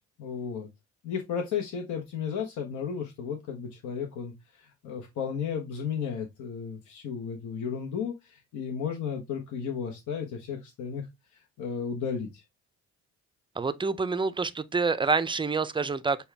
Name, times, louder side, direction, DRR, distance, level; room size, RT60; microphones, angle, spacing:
voice 1, 0.2-0.7 1.0-11.1 11.6-12.4, left 7 dB, 75° left, 1.0 m, -34 dB
voice 2, 13.6-16.2, right 4 dB, 15° right, 0.4 m, -27 dB
6.8 x 2.3 x 3.3 m
cardioid pair, 90°, 30 cm